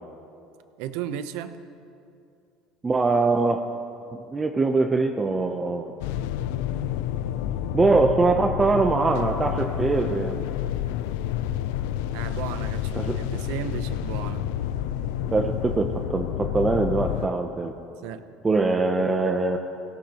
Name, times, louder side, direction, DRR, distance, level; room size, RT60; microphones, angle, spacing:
voice 1, 0.8-1.6 12.1-14.5 18.0-18.2, right 9 dB, 75° right, 10 dB, 0.7 m, -34 dB
voice 2, 2.8-3.6 4.1-5.9 7.7-10.4 13.0-13.2 15.3-17.7 18.4-19.6, right 3 dB, 15° right, 4 dB, 0.6 m, -23 dB
sound 1, 6.0-17.3, left 11 dB, 85° left, 0.5 m, -29 dB
17.5 x 16.5 x 3.0 m, 2.6 s
cardioid pair, 130°, 0 cm